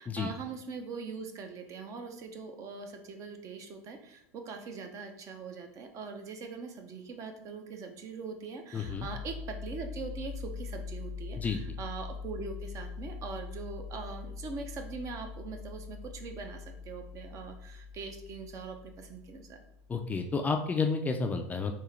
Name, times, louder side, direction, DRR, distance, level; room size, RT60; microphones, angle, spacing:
voice 1, 0.0-19.6, right 4 dB, 40° right, 5 dB, 0.6 m, -42 dB
voice 2, 8.7-9.1 11.4-11.6 19.9-21.7, left 4 dB, 20° left, 4 dB, 0.3 m, -31 dB
sound 1, 8.7-20.1, left 5 dB, 25° right, 1.4 m, -43 dB
3.6 x 2.8 x 3.2 m, 0.75 s
supercardioid pair, 120°, 9 cm